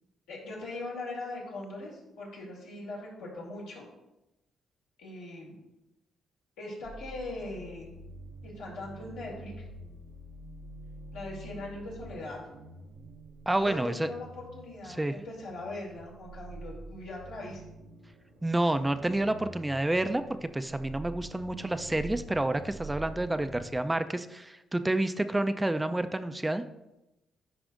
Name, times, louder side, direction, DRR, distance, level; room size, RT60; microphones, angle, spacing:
voice 1, 0.3-3.8 5.0-5.6 6.6-7.9 8.4-9.5 11.1-12.4 13.6-17.6, left 2 dB, 85° left, -5 dB, 2.4 m, -40 dB
sound 1, 6.8-23.7, right 2 dB, 75° right, 0.9 m, -47 dB
voice 2, 13.5-14.1 14.9-15.2 18.4-26.6, right 1 dB, 15° right, 10 dB, 0.4 m, -29 dB
10.0 x 5.1 x 2.5 m, 0.94 s
hypercardioid pair, 50°, 0 cm